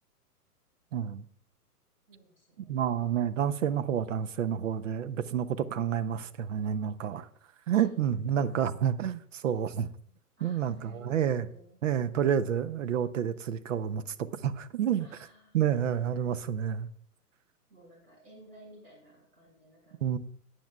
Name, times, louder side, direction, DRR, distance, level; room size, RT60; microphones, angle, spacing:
voice 1, 0.9-1.3 2.7-7.3 7.7-9.9 10.4-11.5 11.8-15.1 15.5-16.9 20.0-20.2, right 9 dB, 55° right, 0.8 m, -29 dB
voice 2, 2.1-2.9 7.7-7.9 8.3-8.6 10.4-11.8 15.0-16.5 17.7-20.0, right 1 dB, 20° right, 5.5 m, -55 dB
17.5 x 9.0 x 2.4 m
figure-of-eight pair, 115°, 47 cm